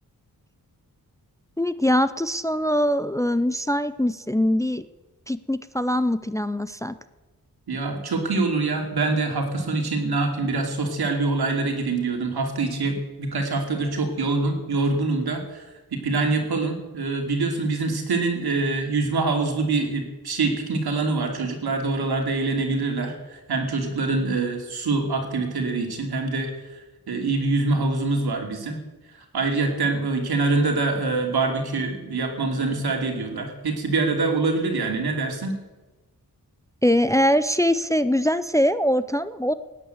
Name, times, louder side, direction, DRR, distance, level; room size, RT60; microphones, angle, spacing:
voice 1, 1.6-4.8 5.3-7.0 36.8-39.5, equal, 10° left, 13 dB, 0.5 m, -22 dB
voice 2, 7.7-26.5 27.1-28.8 29.3-35.6, right 3 dB, 85° right, 3 dB, 2.9 m, -25 dB
17.0 x 9.8 x 7.9 m, 1.2 s
wide cardioid pair, 125°, 37 cm